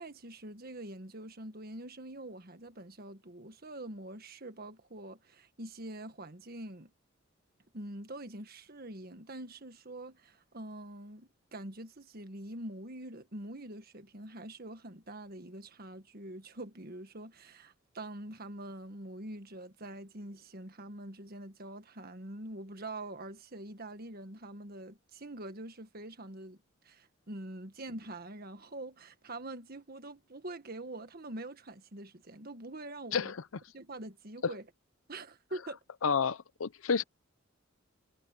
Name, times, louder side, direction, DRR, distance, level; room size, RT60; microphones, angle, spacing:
voice 1, 0.0-6.9 7.7-26.6 26.8-33.3 33.7-34.7 35.1-35.8, right 1 dB, 50° right, 1.6 m, -45 dB
voice 2, 36.0-37.0, left 6 dB, 85° left, 0.6 m, -29 dB
head